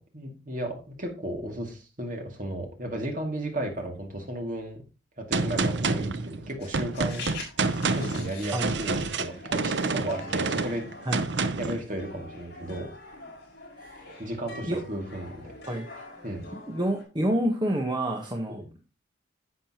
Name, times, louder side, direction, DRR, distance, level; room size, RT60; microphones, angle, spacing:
voice 1, 0.1-4.8 5.2-7.2 7.9-10.9 11.6-12.9 14.2-15.5 16.2-16.4 18.5-18.7, right 1 dB, 40° right, 2 dB, 2.2 m, -34 dB
Gunshot gunfire, 5.3-11.8, right 3 dB, 65° right, 0.7 m, -28 dB
sound 1, 6.6-17.0, left 3 dB, 55° left, 5.2 m, -44 dB
voice 2, 13.8-14.1 14.7-14.8 15.7-15.9 16.7-18.6, right 1 dB, 25° right, 0 dB, 1.1 m, -28 dB
10.5 x 7.5 x 2.9 m, 0.31 s
head